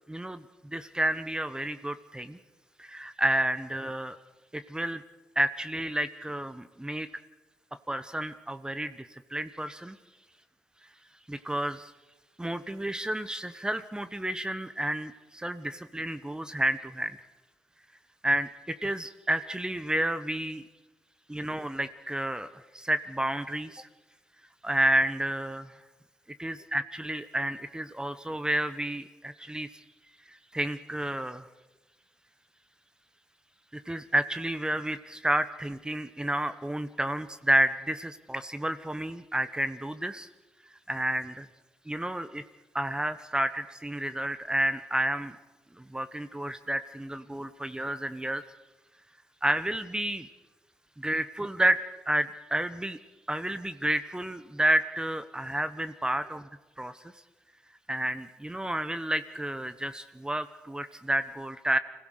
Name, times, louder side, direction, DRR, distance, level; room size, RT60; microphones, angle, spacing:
voice 1, 0.1-0.4 0.7-2.4 2.8-4.2 4.5-5.0 5.3-7.1 7.9-10.0 11.3-11.9 12.4-17.2 18.2-20.6 21.3-23.9 24.6-25.7 26.4-29.7 30.5-31.4 33.7-40.3 40.9-41.5 41.9-42.4 42.7-45.3 45.8-48.4 49.4-50.3 51.0-53.0 53.3-56.4 56.8-56.9 57.9-61.8, right 1 dB, 15° right, 11 dB, 1.2 m, -30 dB
25.5 x 16.5 x 6.6 m, 1.1 s
hypercardioid pair, 45°, 6 cm